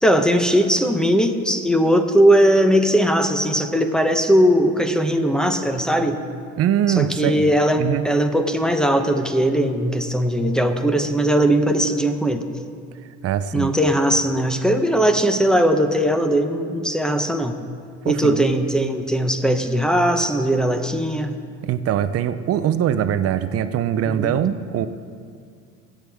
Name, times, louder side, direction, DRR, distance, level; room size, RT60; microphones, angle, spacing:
voice 1, 0.0-6.2 6.9-12.5 13.5-17.6 18.0-21.3 24.2-24.4, equal, ahead, 7 dB, 0.8 m, -19 dB
voice 2, 6.6-7.4 7.8-8.0 13.2-13.7 18.1-18.5 21.6-24.9, right 10 dB, 50° right, 12 dB, 0.6 m, -22 dB
23.0 x 7.9 x 3.5 m, 2.3 s
cardioid pair, 115°, 31 cm